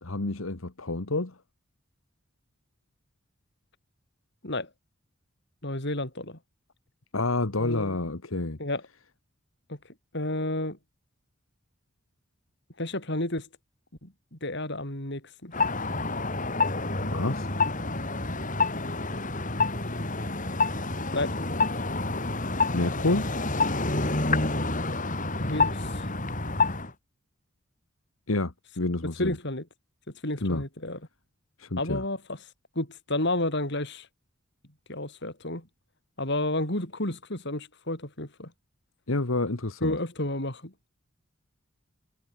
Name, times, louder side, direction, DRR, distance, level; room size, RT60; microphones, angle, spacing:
voice 1, 0.0-1.4 7.1-8.6 17.0-17.5 22.7-23.3 28.3-29.4 30.4-30.6 31.6-32.0 39.1-40.0, left 2 dB, 85° left, 1.7 m, -29 dB
voice 2, 5.6-6.4 7.6-8.0 8.6-8.8 9.7-9.8 10.1-10.8 12.8-13.5 14.0-15.5 21.1-21.3 25.4-26.1 29.2-29.6 30.2-31.0 31.8-32.2 32.7-34.1 34.9-35.7 36.2-38.5 39.8-40.7, left 1 dB, 60° left, 6.1 m, -31 dB
sound 1, 15.5-26.9, left 3 dB, 40° left, 5.1 m, -28 dB
head